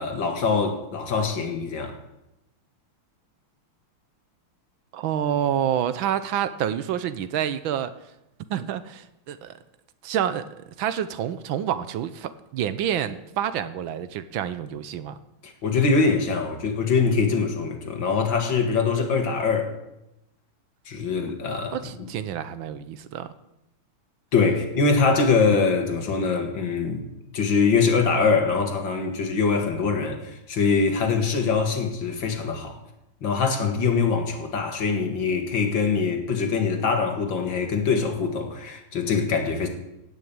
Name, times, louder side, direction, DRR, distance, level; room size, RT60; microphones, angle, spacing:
voice 1, 0.0-1.9 15.4-19.7 20.9-22.1 24.3-27.1 27.3-32.7 33.2-39.7, left 4 dB, 65° left, 2.5 m, -23 dB
voice 2, 4.9-7.9 8.5-9.6 10.0-15.2 21.7-23.3, right 9 dB, 75° right, 1.4 m, -28 dB
16.5 x 6.4 x 8.8 m
omnidirectional pair, 2.3 m